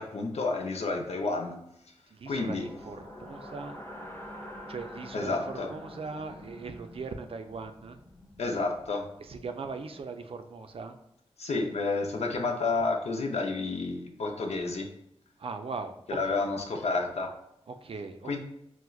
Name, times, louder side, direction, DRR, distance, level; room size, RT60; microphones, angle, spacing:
voice 1, 0.0-1.6 2.3-2.7 5.1-5.7 8.4-9.1 11.4-14.9 16.1-17.3 18.2-18.4, left 3 dB, 75° left, 3 dB, 0.5 m, -30 dB
voice 2, 2.1-3.8 4.7-8.0 9.2-11.0 15.4-16.4 17.7-18.4, right 4 dB, 55° right, 7 dB, 0.4 m, -40 dB
sound 1, 2.4-10.4, left 1 dB, 20° left, 0.9 m, -47 dB
4.4 x 2.1 x 2.3 m, 0.78 s
cardioid pair, 45°, 11 cm